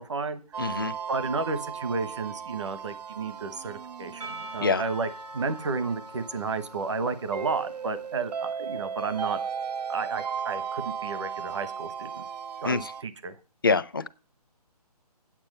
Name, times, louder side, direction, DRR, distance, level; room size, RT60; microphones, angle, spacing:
voice 1, 0.0-0.7 1.1-5.1 5.3-9.4 9.9-12.2 12.6-13.4, right 4 dB, 45° right, 1.1 m, -32 dB
sound 1, 0.5-13.0, right 7 dB, 85° right, 0.5 m, -36 dB
voice 2, 0.6-0.9 4.6-4.8 12.6-12.9 13.6-14.1, left 4 dB, 35° left, 0.5 m, -25 dB
Percussion / Church bell, 4.2-9.2, right 1 dB, 65° right, 3.9 m, -44 dB
8.9 x 8.5 x 5.4 m
hypercardioid pair, 175°, 20 cm